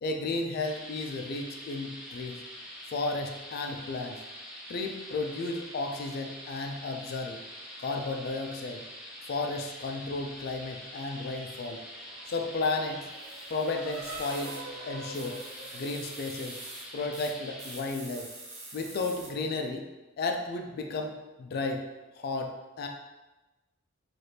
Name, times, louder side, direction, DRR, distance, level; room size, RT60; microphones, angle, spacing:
voice 1, 0.0-2.4 2.9-4.2 4.7-7.4 7.8-8.8 9.3-11.8 12.3-13.1 13.5-14.6 14.9-15.4 15.7-16.6 16.9-18.3 18.7-19.9 20.2-21.8 22.2-22.5 22.8-22.9, left 3 dB, 50° left, 4 dB, 0.3 m, -33 dB
sound 1, 0.6-17.8, equal, 5° right, 0.5 m, -45 dB
Race car auto racing / Accelerating revving vroom, 11.3-17.1, right 2 dB, 75° right, 0.5 m, -46 dB
sound 2, 12.3-12.4 13.1-14.6 15.1-16.8 17.1-17.3 17.6-19.3, right 2 dB, 35° right, 0.7 m, -46 dB
3.3 x 2.5 x 2.7 m, 1.1 s
head